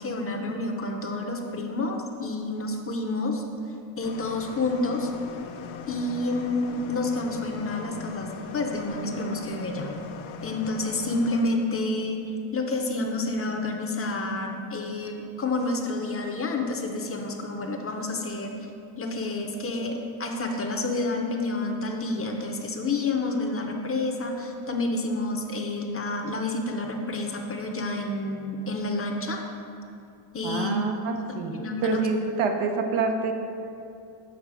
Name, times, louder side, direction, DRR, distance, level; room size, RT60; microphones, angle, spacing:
voice 1, 0.0-3.4 4.0-5.1 5.9-9.9 10.4-12.2 12.5-18.5 19.0-29.4 30.3-30.8 31.6-32.0, left 2 dB, 30° left, 3 dB, 0.7 m, -29 dB
sound 1, 4.0-11.4, left 6 dB, 75° left, 0.7 m, -40 dB
voice 2, 30.4-33.3, right 4 dB, 85° right, 3 dB, 0.9 m, -27 dB
7.3 x 4.4 x 4.7 m, 2.6 s
cardioid pair, 110°, 48 cm